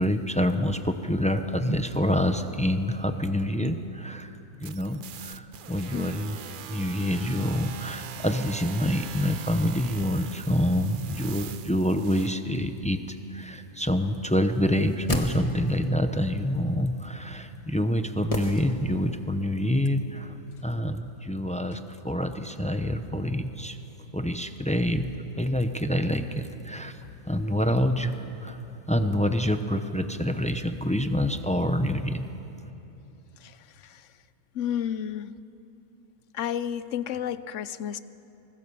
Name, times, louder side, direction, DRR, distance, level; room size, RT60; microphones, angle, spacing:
voice 1, 0.0-4.3 4.6-20.4 20.6-23.8 24.1-25.1 25.4-27.0 27.3-28.6 28.9-32.2, equal, 10° left, 8 dB, 0.5 m, -27 dB
sound 1, 4.6-12.3, right 8 dB, 65° right, 0.5 m, -42 dB
voice 2, 5.9-6.3 33.4-34.1 34.5-35.4 36.3-38.0, left 9 dB, 65° left, 15 dB, 0.9 m, -32 dB
sound 2, 14.7-15.9 18.3-19.2 19.5-19.6, left 2 dB, 25° left, 1.6 m, -33 dB
24.5 x 20.0 x 6.9 m, 2.9 s
omnidirectional pair, 1.6 m